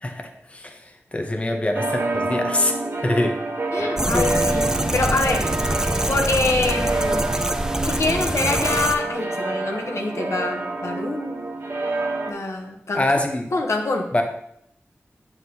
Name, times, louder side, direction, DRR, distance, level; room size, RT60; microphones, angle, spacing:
voice 1, 0.0-3.4 4.1-4.4 12.9-13.5 14.1-14.2, left 1 dB, 25° left, 4 dB, 0.7 m, -24 dB
sound 1, 1.7-12.3, right 2 dB, 50° right, 0.9 m, -27 dB
voice 2, 3.7-5.5 6.1-7.3 7.8-11.4 12.3-13.0 13.5-14.1, left 2 dB, 75° left, 2 dB, 0.9 m, -25 dB
sound 2, 3.8-9.0, left 1 dB, 30° right, 1.4 m, -46 dB
sound 3, 4.0-9.0, right 1 dB, 10° right, 0.5 m, -25 dB
7.5 x 5.9 x 2.7 m, 0.73 s
wide cardioid pair, 60°, 5 cm